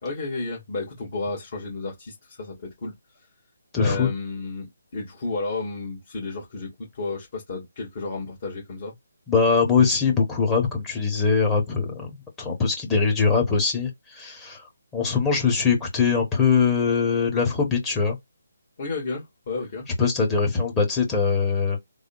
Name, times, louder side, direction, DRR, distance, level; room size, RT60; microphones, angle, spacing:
voice 1, 0.0-2.9 3.8-8.9 18.8-19.9, left 3 dB, 40° left, 1.7 m, -32 dB
voice 2, 3.7-4.1 9.3-12.1 12.4-14.7 14.9-18.2 20.0-21.8, left 5 dB, 15° left, 1.1 m, -22 dB
3.4 x 2.2 x 2.4 m
figure-of-eight pair, 145°, 0 cm